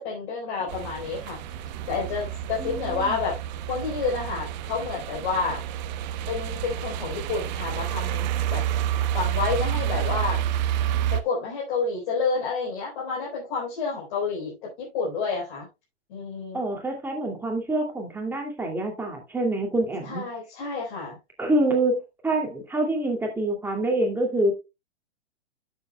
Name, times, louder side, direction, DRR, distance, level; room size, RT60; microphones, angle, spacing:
voice 1, 0.0-1.4 1.9-3.4 3.7-5.6 6.3-8.6 9.1-10.4 11.1-15.7 16.1-16.6 20.1-21.2, left 4 dB, 50° left, 4.1 m, -29 dB
sound 1, 0.7-11.2, right 11 dB, 40° right, 1.0 m, -29 dB
voice 2, 2.6-3.2 16.5-20.2 21.4-24.5, right 1 dB, 5° right, 2.4 m, -26 dB
12.5 x 7.4 x 2.2 m
hypercardioid pair, 140°, 32 cm